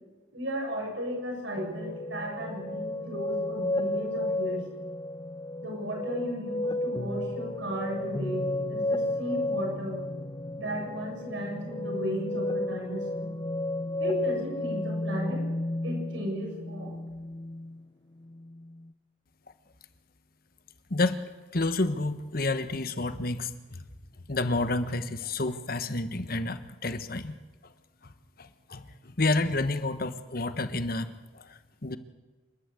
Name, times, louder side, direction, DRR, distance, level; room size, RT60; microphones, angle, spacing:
voice 1, 0.3-4.6 5.6-10.0 10.6-13.3 14.0-15.4 15.8-17.0, equal, 80° right, -1 dB, 7.6 m, -35 dB
sound 1, 1.6-17.8 18.2-18.9, left 1 dB, 20° left, 0.5 m, -33 dB
voice 2, 20.9-21.2 21.5-23.8 24.3-27.3 28.4-31.1 31.3-32.0, left 2 dB, 50° left, 11 dB, 1.2 m, -30 dB
28.0 x 12.0 x 8.3 m, 1.3 s
head